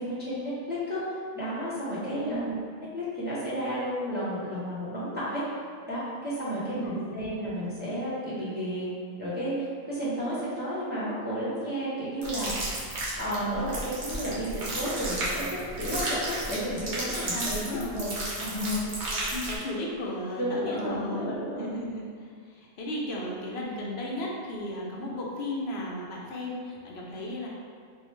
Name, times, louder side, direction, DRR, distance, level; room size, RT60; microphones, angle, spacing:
voice 1, 0.0-2.5 2.9-5.4 5.9-8.9 9.2-12.5 13.2-17.6 17.9-18.1 18.4-18.8 20.4-21.7, equal, 10° right, -11 dB, 0.8 m, -32 dB
voice 2, 2.1-2.6 6.7-7.4 17.3-18.1 18.8-21.3 21.6-27.5, left 1 dB, 70° left, -3 dB, 0.9 m, -35 dB
sound 1, 12.2-19.6, right 1 dB, 80° right, 1.2 m, -33 dB
4.5 x 2.1 x 3.1 m, 2.1 s
omnidirectional pair, 1.1 m